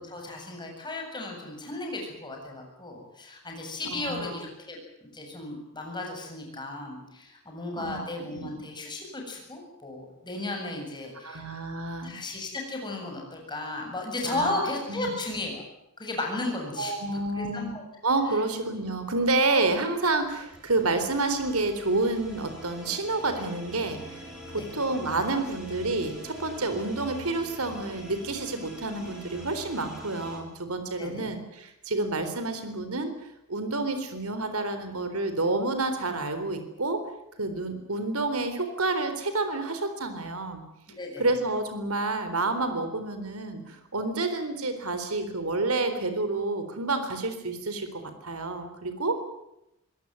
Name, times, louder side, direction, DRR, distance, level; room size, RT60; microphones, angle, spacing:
voice 1, 0.0-11.4 12.0-15.6 16.0-17.0 17.3-17.8 24.6-24.7 31.0-31.3 40.9-41.2, left 2 dB, 20° left, 1 dB, 7.9 m, -35 dB
voice 2, 3.8-4.4 7.8-8.5 11.2-12.1 14.2-15.1 16.8-17.7 18.0-33.1 33.5-37.0 37.4-40.6 41.2-49.2, right 2 dB, 85° right, 9 dB, 3.9 m, -29 dB
sound 1, 19.4-30.4, equal, 5° right, 6.7 m, -45 dB
24.5 x 18.0 x 9.6 m, 0.83 s
head